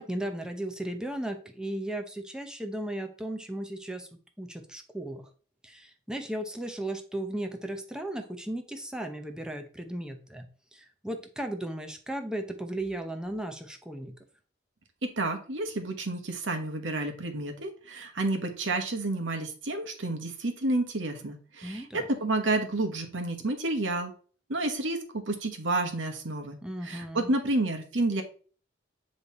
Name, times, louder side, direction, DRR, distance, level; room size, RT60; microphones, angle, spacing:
voice 1, 0.0-4.1 4.4-5.3 5.6-14.2 21.6-22.1 26.6-27.3, right 1 dB, 5° right, 5 dB, 0.7 m, -36 dB
voice 2, 15.0-21.8 22.1-24.1 24.5-25.0 25.3-26.6 26.9-28.2, right 2 dB, 80° right, 5 dB, 1.1 m, -30 dB
7.5 x 3.3 x 4.2 m, 0.40 s
head